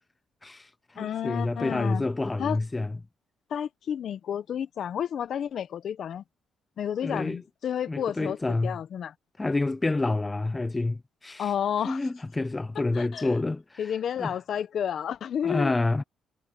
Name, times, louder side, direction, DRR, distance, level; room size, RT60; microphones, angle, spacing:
voice 1, 0.4-3.0 7.0-7.4 7.9-8.8 9.4-11.5 11.8-13.9 14.2-14.3 15.4-16.0, left 2 dB, 20° left, 0.5 m, -28 dB
voice 2, 1.0-2.1 2.4-2.6 3.5-6.2 6.8-8.4 8.6-9.1 11.4-12.0 12.9-13.3 13.8-15.7, left 9 dB, 65° left, 1.0 m, -31 dB
cardioid pair, 90°, 0 cm